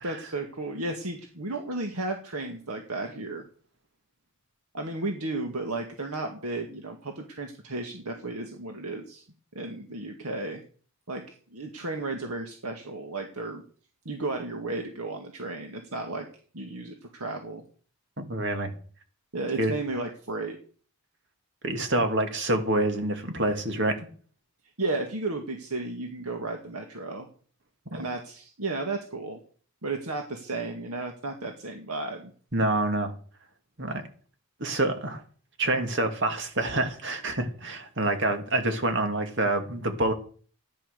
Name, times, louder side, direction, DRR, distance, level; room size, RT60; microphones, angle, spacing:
voice 1, 0.0-3.5 4.7-9.2 9.5-10.6 11.1-11.2 11.5-13.6 14.1-16.2 16.5-17.6 19.3-20.6 24.8-27.3 27.9-29.4 29.8-32.3, right 2 dB, 90° right, 2.0 m, -33 dB
voice 2, 18.2-18.7 19.6-19.7 21.6-24.1 27.9-28.1 32.5-33.1 33.8-34.0 34.6-35.2 35.6-40.1, right 2 dB, 55° right, 2.4 m, -27 dB
15.0 x 10.5 x 6.8 m
head